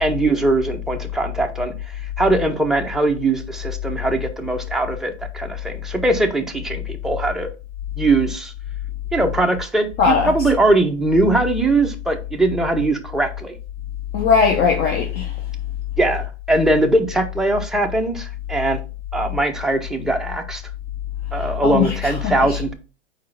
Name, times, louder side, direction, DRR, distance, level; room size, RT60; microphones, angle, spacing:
voice 1, 0.0-1.7 2.2-7.5 8.0-8.5 9.1-13.5 16.0-18.8 19.1-20.6 21.3-22.7, right 2 dB, ahead, 0.8 m, -21 dB
voice 2, 10.0-10.3 14.1-15.3 21.6-21.9 22.2-22.6, left 6 dB, 30° left, 0.9 m, -18 dB
4.7 x 4.4 x 5.6 m
hypercardioid pair, 115°, 33 cm